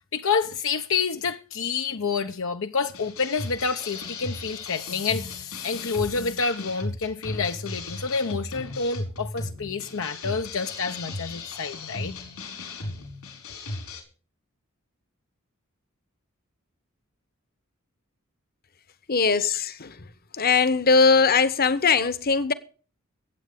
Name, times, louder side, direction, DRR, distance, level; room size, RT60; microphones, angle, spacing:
voice 1, 0.1-12.1, left 5 dB, 65° left, 0.8 m, -28 dB
sound 1, 2.9-14.0, left 2 dB, 85° left, 5.1 m, -36 dB
voice 2, 19.1-20.1 20.3-22.5, left 4 dB, 45° left, 1.1 m, -20 dB
22.5 x 8.5 x 3.6 m
head